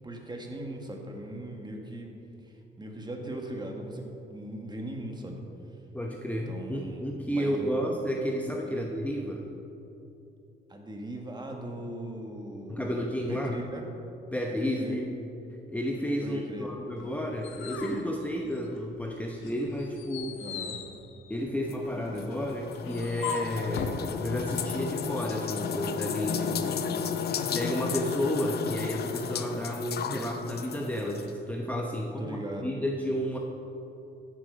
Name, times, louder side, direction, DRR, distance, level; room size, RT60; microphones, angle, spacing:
voice 1, 0.0-2.1 2.4-5.4 6.5-7.0 7.3-7.7 8.6-8.9 10.7-13.8 14.6-15.0 16.2-16.7 20.4-20.8 26.6-27.0 32.2-32.8, right 1 dB, 20° right, 2 dB, 1.8 m, -39 dB
voice 2, 5.9-9.5 12.7-13.6 14.3-15.1 15.7-20.4 21.3-27.0 27.5-33.4, equal, 5° left, 0 dB, 0.9 m, -32 dB
sound 1, 17.0-19.0 19.4-24.0, left 7 dB, 80° left, 1.0 m, -39 dB
sound 2, 21.7-31.3, left 7 dB, 55° left, 0.7 m, -33 dB
13.0 x 7.7 x 5.3 m, 2.8 s
cardioid pair, 90°, 20 cm